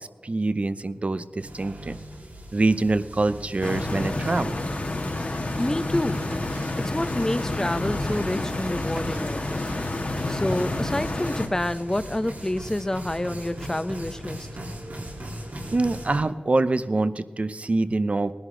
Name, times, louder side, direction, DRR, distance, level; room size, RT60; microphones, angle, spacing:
voice 1, 0.2-2.0 2.5-4.6 15.7-18.3, right 2 dB, 45° right, 13 dB, 0.7 m, -25 dB
sound 1, 1.4-16.2, right 1 dB, 85° right, 3.5 m, -39 dB
Stream, 3.6-11.5, left 2 dB, 50° left, 1.4 m, -29 dB
voice 2, 5.5-6.2 6.8-9.7 10.0-14.5, left 1 dB, 20° left, 12 dB, 0.6 m, -28 dB
20.0 x 11.0 x 3.8 m, 1.5 s
wide cardioid pair, 75°, 3 cm